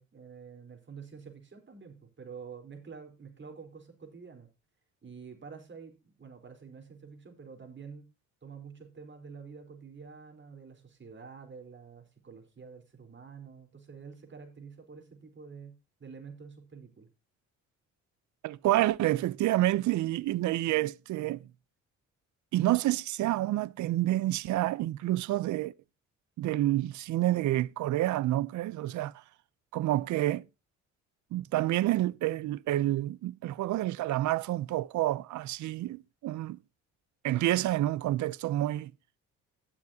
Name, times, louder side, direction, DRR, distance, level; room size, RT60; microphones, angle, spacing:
voice 1, 0.0-4.5 5.0-8.1 8.4-15.7 16.0-17.1, right 5 dB, 40° right, 4.0 m, -48 dB
voice 2, 18.4-21.5 22.5-25.7 26.4-29.1 29.7-30.4 31.3-36.6 37.2-38.9, right 15 dB, 75° right, 0.6 m, -28 dB
17.0 x 7.3 x 2.8 m
cardioid pair, 90°, 30 cm